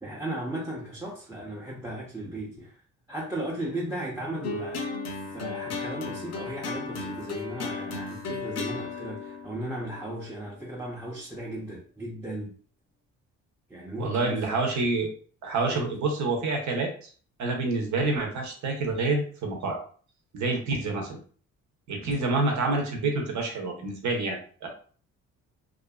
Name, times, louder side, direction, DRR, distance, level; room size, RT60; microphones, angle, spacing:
voice 1, 0.0-2.7 3.1-4.8 5.3-12.5 13.7-14.5 15.7-15.9, right 1 dB, 10° right, -4 dB, 0.6 m, -36 dB
sound 1, 4.4-10.9, left 4 dB, 60° left, 0.6 m, -35 dB
voice 2, 14.0-15.1 15.4-17.1 17.4-19.8 20.3-21.2 21.9-24.7, right 3 dB, 70° right, 2 dB, 0.9 m, -27 dB
2.5 x 2.5 x 2.2 m, 0.43 s
cardioid pair, 90°, 30 cm